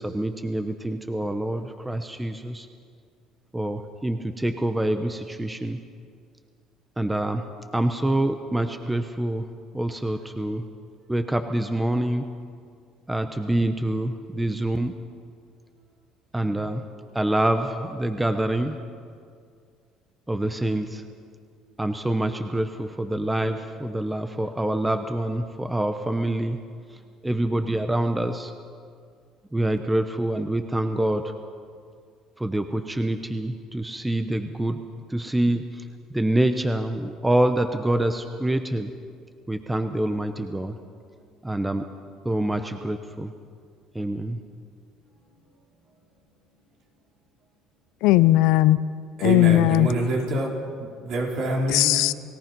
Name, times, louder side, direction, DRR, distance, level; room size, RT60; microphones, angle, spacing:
voice 1, 0.0-2.7 3.5-5.8 7.0-7.4 7.7-9.5 9.7-10.7 11.1-12.2 13.1-14.9 16.3-16.8 17.1-18.8 20.3-21.0 21.8-26.6 26.9-28.5 29.5-31.3 32.4-34.8 35.1-38.9 39.5-40.8 41.4-41.8 42.2-43.3 43.9-44.4, right 1 dB, 10° right, 8 dB, 0.9 m, -26 dB
voice 2, 48.0-48.8 49.2-49.9 51.7-52.1, left 16 dB, 80° left, 15 dB, 0.6 m, -17 dB
voice 3, 49.2-51.9, right 2 dB, 65° right, -1 dB, 4.9 m, -26 dB
29.5 x 17.5 x 5.4 m, 2.2 s
cardioid pair, 125°, 0 cm